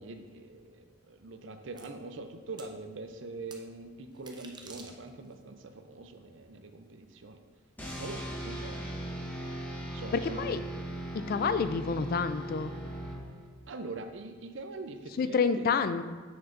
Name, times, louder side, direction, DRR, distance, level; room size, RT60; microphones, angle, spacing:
voice 1, 0.0-7.4 8.0-9.1 9.9-10.6 13.7-15.7, right 3 dB, 70° right, 7 dB, 0.5 m, -43 dB
sound 1, 1.8-1.9 2.6-2.7 3.5-3.6 4.1-5.3, right 4 dB, 20° right, 0.5 m, -49 dB
sound 2, 7.8-13.6, right 1 dB, 10° left, 1.1 m, -39 dB
voice 2, 10.1-10.6 11.3-12.7 15.2-16.0, left 5 dB, 50° left, 11 dB, 0.3 m, -28 dB
7.1 x 6.3 x 2.6 m, 1.4 s
head